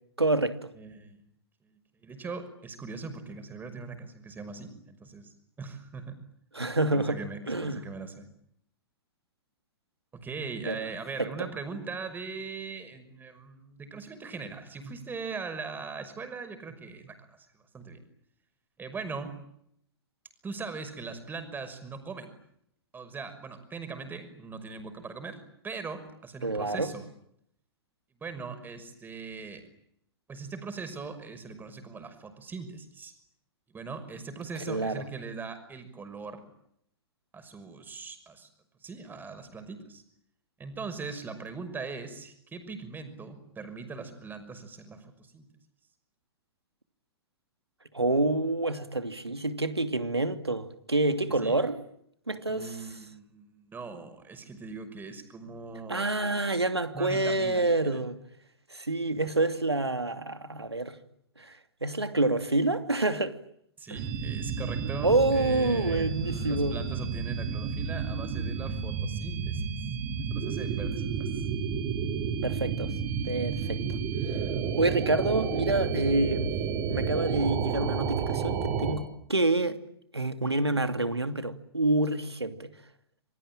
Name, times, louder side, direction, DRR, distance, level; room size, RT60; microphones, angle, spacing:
voice 1, 0.2-0.7 6.5-7.2 7.5-7.8 10.7-10.9 11.2-11.3 26.4-26.9 34.7-35.0 47.9-51.8 52.3-52.8 55.9-58.2 58.7-60.9 61.4-61.5 61.8-63.4 63.9-64.0 65.0-66.8 72.4-72.9 73.2-73.8 74.8-76.5 76.9-79.8 80.1-82.7, right 2 dB, 90° right, 2.8 m, -27 dB
voice 2, 0.7-1.2 2.0-6.2 6.9-8.3 10.1-17.2 17.7-18.0 18.8-19.4 20.4-22.3 22.9-25.4 25.6-27.0 28.2-29.6 30.3-33.1 33.7-36.4 37.3-38.5 38.8-40.0 40.6-45.5 51.4-51.6 52.4-56.4 56.9-58.0 63.8-69.7 70.2-71.5, right 4 dB, 15° right, 5.8 m, -40 dB
sound 1, 64.0-79.0, right 6 dB, 35° right, 6.2 m, -31 dB
27.5 x 23.5 x 9.0 m
figure-of-eight pair, 110°, 13 cm